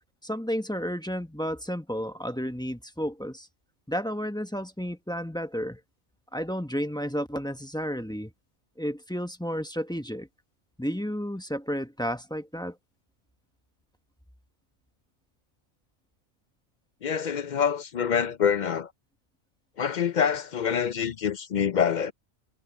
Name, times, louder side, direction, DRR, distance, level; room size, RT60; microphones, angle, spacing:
voice 1, 0.2-3.5 3.9-5.8 6.3-8.3 8.8-10.3 10.8-12.8, equal, 5° left, 1.0 m, -32 dB
voice 2, 17.0-18.9 19.8-22.1, left 7 dB, 55° left, 0.6 m, -26 dB
omnidirectional pair, 1.2 m